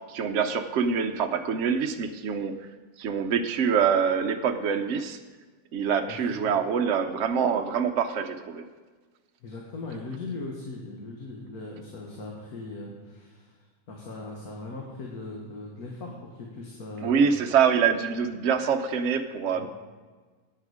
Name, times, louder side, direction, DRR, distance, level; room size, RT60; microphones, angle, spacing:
voice 1, 0.1-2.5 3.0-5.2 5.7-8.6 17.0-19.7, right 6 dB, 60° right, 6 dB, 0.9 m, -25 dB
voice 2, 6.1-6.4 9.4-17.4 19.5-19.7, left 2 dB, 90° left, -1 dB, 2.0 m, -39 dB
11.0 x 9.3 x 4.9 m, 1.4 s
omnidirectional pair, 1.5 m